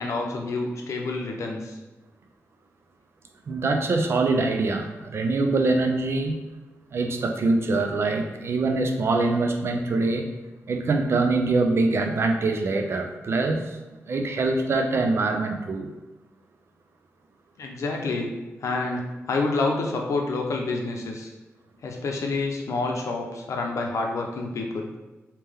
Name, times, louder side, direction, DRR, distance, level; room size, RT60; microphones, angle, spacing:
voice 1, 0.0-1.8 17.6-18.3 18.6-21.3 21.8-24.9, left 3 dB, 75° left, 1 dB, 0.6 m, -28 dB
voice 2, 3.5-6.4 6.9-10.3 10.7-13.8 14.1-15.9, right 3 dB, 55° right, 5 dB, 0.4 m, -24 dB
3.3 x 2.8 x 3.5 m, 1.1 s
wide cardioid pair, 125°, 5 cm